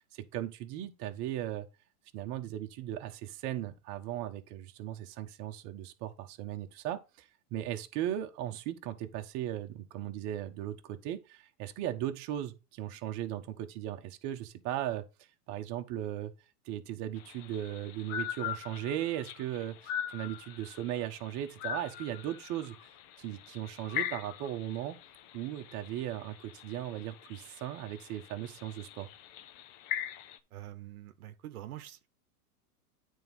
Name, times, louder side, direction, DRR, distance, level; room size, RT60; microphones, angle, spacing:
voice 1, 0.0-1.7 2.1-15.0 15.5-16.3 16.7-22.8 23.2-25.0 25.3-29.1, right 12 dB, 40° right, 1.1 m, -37 dB
sound 1, 17.2-30.4, left 10 dB, 40° left, 1.0 m, -42 dB
voice 2, 30.5-32.1, right 13 dB, 70° right, 1.0 m, -45 dB
9.1 x 3.7 x 5.3 m
hypercardioid pair, 125°, 45 cm